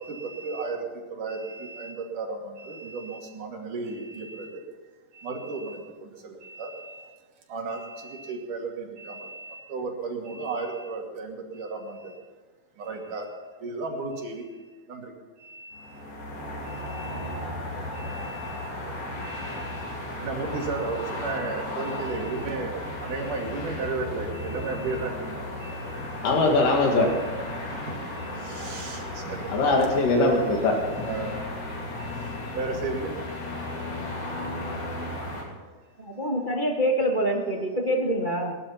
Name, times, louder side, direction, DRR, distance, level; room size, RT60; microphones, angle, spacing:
voice 1, 0.0-0.8 1.1-2.4 2.6-4.5 5.2-5.8 6.2-6.9 7.5-12.0 12.9-13.2 13.6-14.4 14.9-15.0 15.5-15.8 16.8-17.3 17.8-18.9 19.2-19.8 20.2-22.7 23.0-25.2 25.6-25.8 27.1-27.3 28.4-29.0 29.3-29.4 29.8-29.9 31.0-31.4 32.2-33.1, right 3 dB, 70° right, 0 dB, 4.0 m, -34 dB
sound 1, 15.7-35.4, left 1 dB, 65° left, 4.7 m, -35 dB
voice 2, 26.2-27.1 29.5-31.0, left 2 dB, 85° left, 1 dB, 3.6 m, -21 dB
voice 3, 36.0-38.5, equal, 40° right, 0 dB, 0.6 m, -25 dB
20.0 x 12.0 x 5.8 m, 1.4 s
omnidirectional pair, 3.8 m